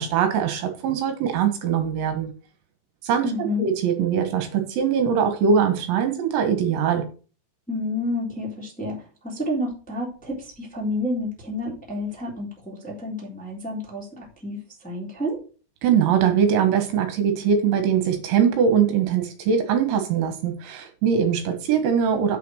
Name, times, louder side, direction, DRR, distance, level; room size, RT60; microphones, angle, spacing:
voice 1, 0.0-2.3 3.0-3.3 3.6-7.1 15.8-22.4, right 7 dB, 75° right, 6 dB, 3.5 m, -22 dB
voice 2, 3.2-3.6 7.7-15.4, left 1 dB, ahead, -3 dB, 2.4 m, -30 dB
7.4 x 6.9 x 6.4 m, 0.37 s
omnidirectional pair, 5.7 m